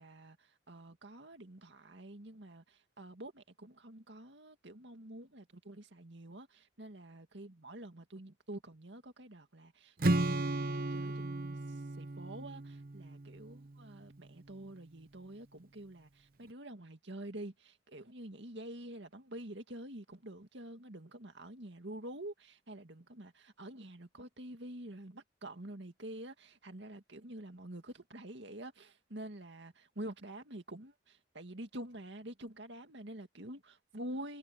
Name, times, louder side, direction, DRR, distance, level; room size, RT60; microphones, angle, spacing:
voice 1, 0.0-34.4, right 1 dB, 65° right, 2.2 m, -48 dB
Strum, 10.0-14.1, right 2 dB, 50° right, 0.9 m, -35 dB
head